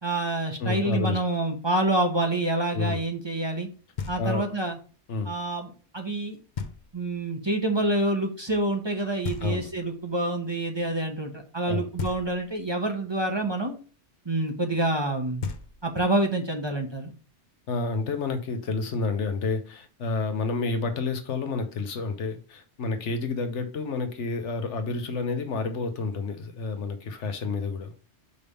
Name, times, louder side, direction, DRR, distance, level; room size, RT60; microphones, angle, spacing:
voice 1, 0.0-3.7 4.1-4.8 5.3-6.4 6.9-13.7 14.2-15.4 15.8-17.1, right 2 dB, 25° right, 0.9 m, -27 dB
voice 2, 0.6-1.2 2.7-3.0 4.2-4.4 5.1-5.3 9.4-9.7 11.7-11.9 17.7-27.9, left 3 dB, 80° left, 1.2 m, -29 dB
Knock, 4.0-4.6 6.6-7.2 9.2-10.0 12.0-12.7 15.0-15.1 15.4-16.2, left 6 dB, 45° left, 0.8 m, -36 dB
5.4 x 3.4 x 5.5 m
omnidirectional pair, 1.2 m